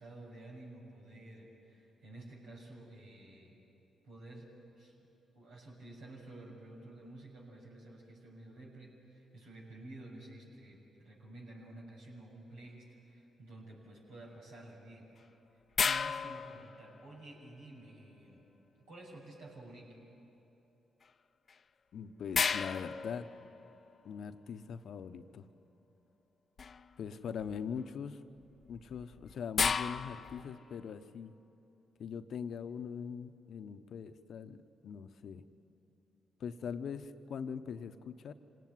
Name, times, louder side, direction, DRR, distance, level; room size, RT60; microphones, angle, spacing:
voice 1, 0.0-3.6 4.0-4.5 4.8-4.9 5.3-15.1 15.5-18.4 18.8-20.0, right 2 dB, 85° right, -3 dB, 6.6 m, -51 dB
sound 1, 15.8-17.3 21.5-21.6 22.3-23.9 26.6-26.9 27.4-27.8 28.7-30.6, left 6 dB, 50° left, 0.7 m, -34 dB
voice 2, 21.9-23.3 24.0-25.5 27.0-28.2 28.7-31.3 32.0-34.6 34.8-35.4 36.4-38.3, left 7 dB, 70° left, 10 dB, 1.0 m, -42 dB
26.0 x 18.5 x 9.6 m, 2.9 s
supercardioid pair, 50°, 0 cm